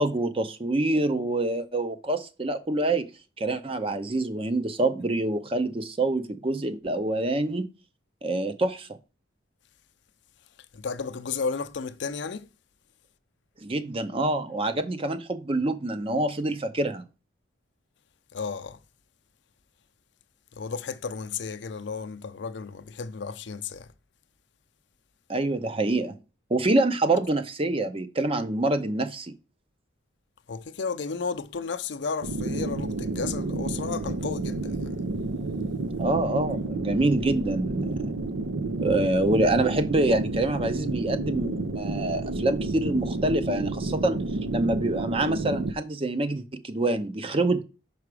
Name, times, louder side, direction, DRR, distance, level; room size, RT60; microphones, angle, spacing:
voice 1, 0.0-3.1 3.4-7.6 8.2-9.0 13.6-17.0 25.3-26.1 26.5-29.3 36.0-38.1 38.8-44.2 44.5-47.6, right 2 dB, 30° right, 0.5 m, -26 dB
voice 2, 10.7-12.5 18.3-18.8 20.5-23.9 30.5-35.0, left 5 dB, 60° left, 0.5 m, -33 dB
sound 1, 32.2-45.7, right 2 dB, 85° right, 0.6 m, -30 dB
5.8 x 4.8 x 4.8 m
head